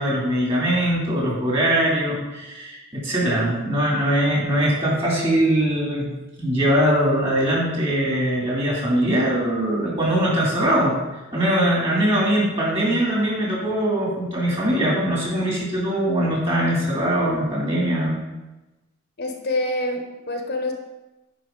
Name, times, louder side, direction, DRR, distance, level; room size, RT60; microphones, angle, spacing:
voice 1, 0.0-6.1 6.4-11.0 11.3-18.2, right 1 dB, 30° right, -4 dB, 2.6 m, -21 dB
voice 2, 19.2-20.7, left 1 dB, 50° left, 4 dB, 0.9 m, -26 dB
10.0 x 4.8 x 3.9 m, 1.0 s
head